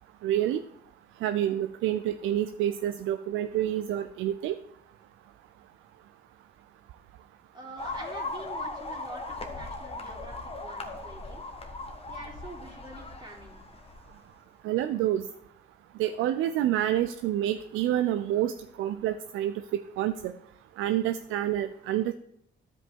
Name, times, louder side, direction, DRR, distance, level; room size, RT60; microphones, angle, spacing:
voice 1, 0.2-0.6 1.2-4.6 14.6-15.2 16.0-20.3 20.8-22.1, right 12 dB, 85° right, 10 dB, 0.4 m, -28 dB
voice 2, 7.5-11.4 12.1-13.7, right 2 dB, 20° right, -2 dB, 2.9 m, -45 dB
sound 1, 7.8-14.1, left 2 dB, 30° left, 1.3 m, -38 dB
12.5 x 5.2 x 3.6 m, 0.77 s
cardioid pair, 90°, 20 cm